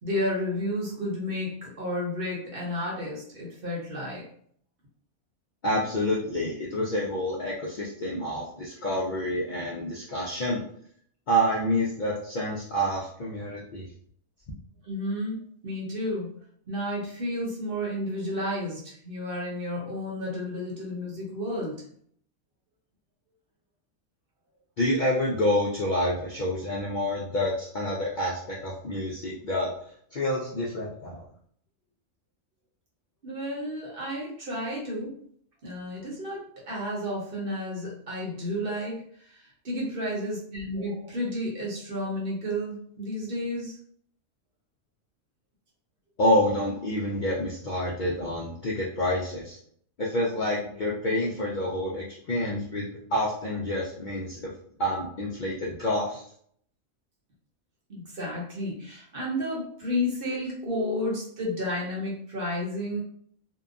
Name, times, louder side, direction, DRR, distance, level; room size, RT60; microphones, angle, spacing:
voice 1, 0.0-4.2 14.8-15.4 15.6-16.3 16.7-21.8 33.2-35.1 35.6-39.0 39.3-43.8 57.9-63.0, left 1 dB, 45° right, -3 dB, 0.9 m, -31 dB
voice 2, 5.6-10.6 11.3-13.8 24.8-29.7 30.1-31.2 46.2-49.6 50.0-54.5 54.8-56.2, equal, 90° left, -4 dB, 0.4 m, -28 dB
2.8 x 2.2 x 2.4 m, 0.62 s
omnidirectional pair, 1.5 m